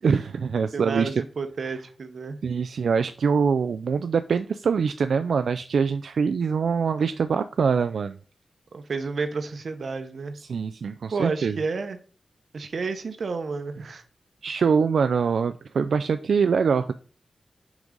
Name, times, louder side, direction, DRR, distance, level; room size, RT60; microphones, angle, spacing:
voice 1, 0.0-1.1 2.4-8.2 10.4-11.6 14.4-16.9, right 6 dB, 85° right, 0.3 m, -24 dB
voice 2, 0.7-2.4 8.7-10.4 11.1-12.0 12.5-14.0, right 4 dB, 60° right, 0.8 m, -31 dB
6.0 x 5.4 x 3.8 m
wide cardioid pair, 175°, 0 cm